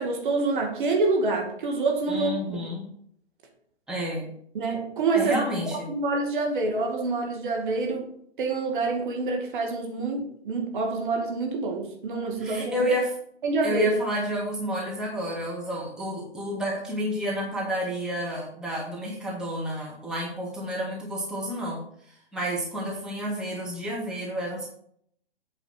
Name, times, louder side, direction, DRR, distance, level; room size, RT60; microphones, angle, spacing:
voice 1, 0.0-2.6 4.5-5.4 5.9-8.1 8.4-12.8 13.4-13.9, right 3 dB, 50° right, 2.3 m, -27 dB
voice 2, 2.1-2.9 3.9-4.3 5.1-5.9 12.4-13.1 13.6-21.8 22.1-24.7, equal, ahead, 1.7 m, -30 dB
8.4 x 5.0 x 6.0 m
figure-of-eight pair, 130°, 32 cm